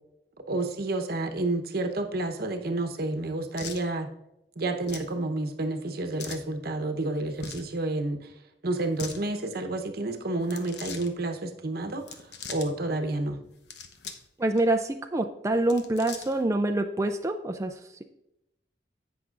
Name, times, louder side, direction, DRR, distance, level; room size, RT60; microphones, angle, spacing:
voice 1, 0.5-4.1 4.6-8.3 8.6-12.2 12.5-13.4, right 2 dB, 60° right, 6 dB, 0.9 m, -30 dB
sound 1, 3.6-3.8 4.8-5.1 6.2-6.5 7.3-7.7 8.8-9.2 10.4-11.1 12.0-12.7 13.5-14.3 14.6-14.7 15.5-16.5, left 6 dB, 70° left, 0.9 m, -41 dB
voice 2, 14.4-18.0, right 1 dB, 15° right, 4 dB, 0.4 m, -26 dB
16.5 x 6.0 x 2.5 m, 0.87 s
head